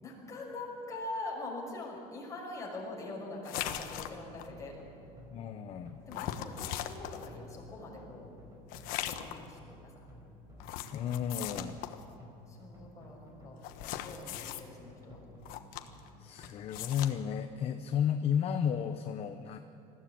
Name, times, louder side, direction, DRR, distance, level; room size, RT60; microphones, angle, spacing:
voice 1, 0.0-4.7 6.1-8.3 8.9-10.0 12.5-15.2, left 2 dB, 20° left, -3 dB, 5.8 m, -43 dB
sound 1, 3.4-4.5 6.1-7.3 8.7-9.5 10.6-12.0 13.6-14.6 15.4-16.1 16.4-17.1, left 12 dB, 70° left, 1.2 m, -39 dB
sound 2, 3.7-16.5, left 1 dB, 20° right, 4.6 m, -54 dB
voice 2, 5.3-6.0 10.9-11.8 16.2-19.6, left 8 dB, 40° left, 7 dB, 0.8 m, -33 dB
20.5 x 15.0 x 8.6 m, 2.6 s
cardioid pair, 150°, 15 cm